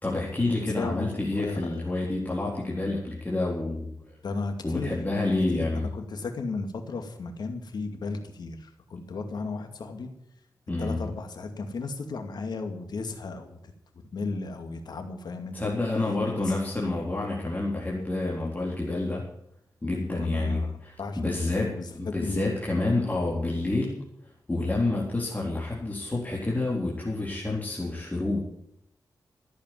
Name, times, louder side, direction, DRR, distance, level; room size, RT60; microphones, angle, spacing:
voice 1, 0.0-4.2 4.6-5.9 10.7-11.0 15.5-19.3 19.8-24.0 24.5-28.4, left 2 dB, 25° left, -5 dB, 4.0 m, -28 dB
voice 2, 0.7-1.1 1.3-2.0 4.2-4.9 5.5-5.7 5.9-10.1 10.8-13.6 14.1-15.7 16.5-16.6 20.1-22.5, left 3 dB, 80° left, 6 dB, 2.3 m, -35 dB
14.5 x 8.6 x 9.4 m, 0.75 s
wide cardioid pair, 85°, 7 cm